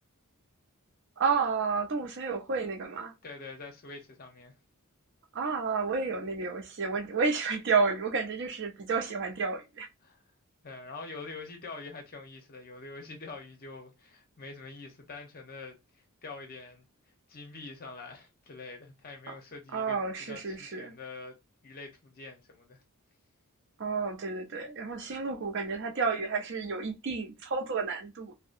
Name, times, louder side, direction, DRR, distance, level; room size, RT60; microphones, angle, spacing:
voice 1, 1.2-3.1 5.3-9.9 19.3-19.4 19.7-20.9 23.8-28.3, right 4 dB, 55° right, 0.6 m, -31 dB
voice 2, 3.2-4.5 10.0-10.2 10.6-15.8 16.2-16.9 17.3-21.3 21.6-22.8, left 3 dB, 40° left, 0.7 m, -45 dB
2.7 x 2.1 x 2.4 m
head